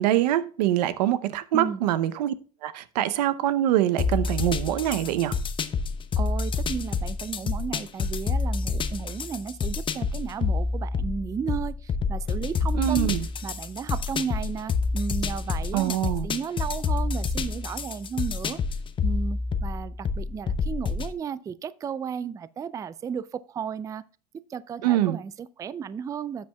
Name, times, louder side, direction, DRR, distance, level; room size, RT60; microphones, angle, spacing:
voice 1, 0.0-2.3 2.6-5.3 12.7-13.3 15.7-16.3 24.8-25.2, right 12 dB, 90° right, 0.7 m, -24 dB
sound 1, 4.0-21.1, left 4 dB, 25° left, 0.7 m, -28 dB
voice 2, 6.2-13.1 13.4-18.6 19.0-24.0 24.3-26.5, right 7 dB, 15° right, 0.3 m, -34 dB
12.5 x 7.7 x 2.3 m
supercardioid pair, 115°, 20 cm